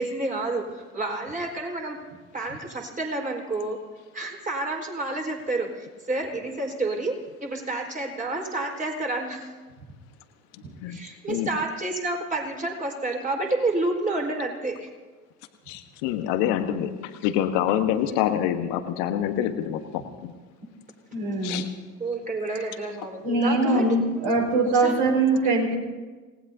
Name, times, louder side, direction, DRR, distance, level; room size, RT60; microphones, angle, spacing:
voice 1, 0.0-2.0 2.3-3.8 4.1-9.5 10.9-14.9 17.9-18.2 21.5-21.6 22.0-25.1 25.4-25.8, right 2 dB, 20° right, 0 dB, 4.8 m, -30 dB
voice 2, 15.7-16.9 17.2-20.3 21.4-21.7, left 10 dB, 65° left, 8 dB, 1.4 m, -26 dB
voice 3, 21.1-21.7 23.2-25.8, right 2 dB, 60° right, 1 dB, 5.0 m, -22 dB
27.5 x 18.5 x 2.8 m, 1.3 s
hypercardioid pair, 65°, 36 cm